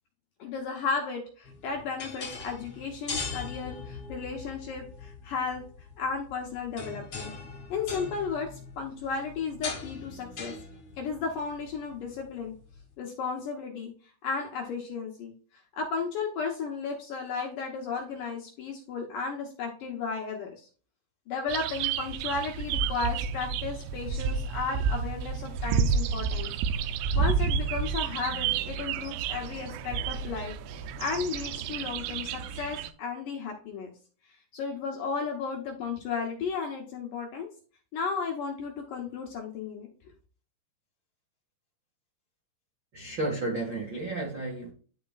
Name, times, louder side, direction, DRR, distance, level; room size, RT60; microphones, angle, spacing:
voice 1, 0.4-5.6 6.0-7.3 7.7-10.5 11.0-12.5 13.0-13.9 14.2-15.3 15.7-20.7 21.3-26.5 27.1-30.5 31.0-33.9 34.5-37.5 37.9-39.9, left 5 dB, 70° left, 0 dB, 2.1 m, -34 dB
sound 1, 1.4-12.8, left 4 dB, 40° left, 2.3 m, -41 dB
sound 2, 21.5-32.9, right 6 dB, 85° right, 2.7 m, -30 dB
voice 2, 42.9-44.7, right 2 dB, 60° right, -3 dB, 1.1 m, -32 dB
11.0 x 5.0 x 2.4 m, 0.40 s
omnidirectional pair, 5.0 m